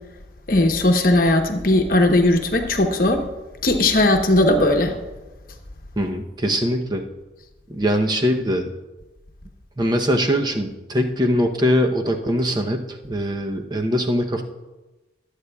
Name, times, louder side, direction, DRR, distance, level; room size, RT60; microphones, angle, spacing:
voice 1, 0.5-3.2 3.6-5.0, left 1 dB, 50° left, 4 dB, 1.0 m, -18 dB
voice 2, 6.0-7.1 7.7-8.7 9.8-14.4, equal, 25° right, 4 dB, 0.8 m, -22 dB
23.0 x 8.3 x 2.3 m, 1.1 s
head